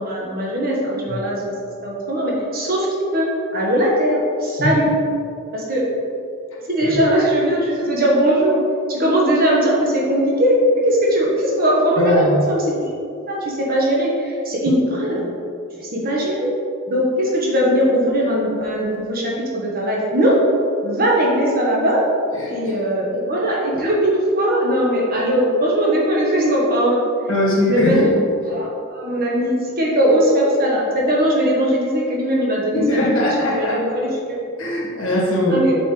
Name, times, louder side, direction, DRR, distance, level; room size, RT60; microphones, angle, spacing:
voice 1, 0.0-1.5 1.8-2.9 3.1-4.9 5.5-5.8 6.7-8.6 8.9-12.9 13.3-15.3 15.8-16.5 16.9-20.4 20.8-22.0 22.5-27.0 27.7-28.1 28.4-33.1 33.5-34.4 35.5-35.8, equal, 45° right, -4 dB, 1.4 m, -19 dB
voice 2, 12.0-12.5 22.3-22.7 27.3-28.1 32.7-33.8 34.6-35.6, left 1 dB, 70° left, -4 dB, 1.6 m, -20 dB
7.4 x 5.4 x 3.3 m, 2.5 s
head